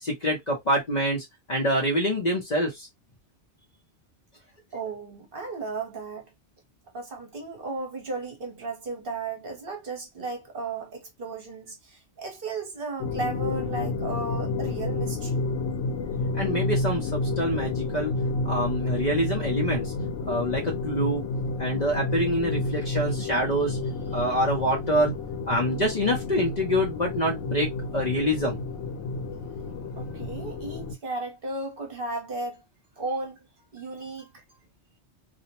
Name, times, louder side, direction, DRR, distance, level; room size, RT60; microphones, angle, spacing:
voice 1, 0.0-2.9 16.3-18.1 18.4-19.9 20.3-21.3 21.6-23.8 24.1-25.1 25.5-27.7 27.9-28.6, equal, 45° left, 0.7 m, -26 dB
voice 2, 4.7-6.3 6.9-15.4 30.0-32.6 33.0-33.4 33.7-34.4, right 3 dB, 55° right, 1.0 m, -35 dB
sound 1, 13.0-30.9, left 3 dB, 90° left, 1.0 m, -30 dB
2.5 x 2.1 x 2.8 m
omnidirectional pair, 1.2 m